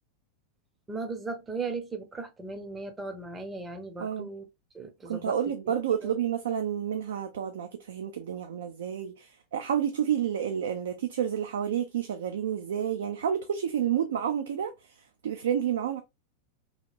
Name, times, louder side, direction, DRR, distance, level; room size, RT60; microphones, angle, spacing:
voice 1, 0.9-4.5 4.7-5.3 5.7-5.8 6.0-6.2, right 3 dB, 15° right, 0.6 m, -37 dB
voice 2, 4.0-4.3 5.1-14.7 15.2-16.0, right 9 dB, 60° right, 0.4 m, -30 dB
2.8 x 2.8 x 2.3 m
figure-of-eight pair, 90°, 0 cm